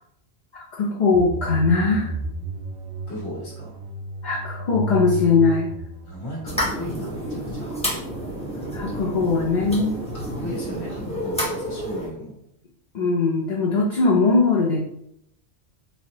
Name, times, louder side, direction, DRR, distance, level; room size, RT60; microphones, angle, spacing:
voice 1, 0.5-2.1 4.2-5.7 8.7-9.9 12.9-14.8, left 4 dB, 50° left, -2 dB, 0.6 m, -20 dB
sound 1, 1.1-10.0, right 1 dB, 65° right, 0.8 m, -34 dB
voice 2, 3.1-3.7 6.0-7.7 10.1-12.3, equal, 75° left, -4 dB, 1.5 m, -36 dB
sound 2, 6.5-12.1, equal, 5° left, 0.8 m, -30 dB
4.4 x 2.7 x 2.9 m, 0.76 s
omnidirectional pair, 1.1 m